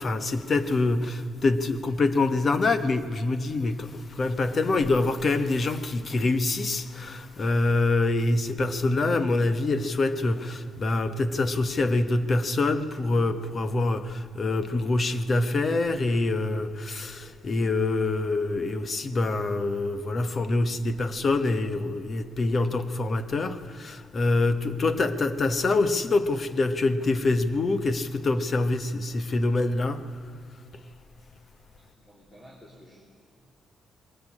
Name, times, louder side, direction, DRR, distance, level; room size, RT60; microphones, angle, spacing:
voice 1, 0.0-30.2, left 2 dB, 35° left, 1.1 m, -25 dB
voice 2, 31.8-33.0, equal, 20° left, 3.2 m, -52 dB
21.5 x 17.0 x 9.8 m
cardioid pair, 145°, 0 cm